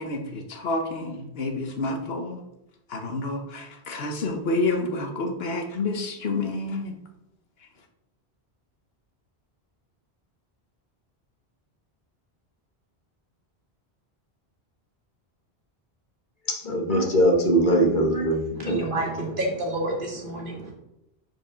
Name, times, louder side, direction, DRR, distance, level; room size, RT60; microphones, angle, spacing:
voice 1, 0.0-2.4 2.9-6.9, left 2 dB, 70° left, 4 dB, 1.1 m, -29 dB
voice 2, 16.5-18.8, right 1 dB, 50° left, 0 dB, 1.3 m, -21 dB
voice 3, 18.6-20.7, right 1 dB, 55° right, -1 dB, 1.9 m, -29 dB
5.3 x 4.7 x 5.5 m, 0.86 s
omnidirectional pair, 1.1 m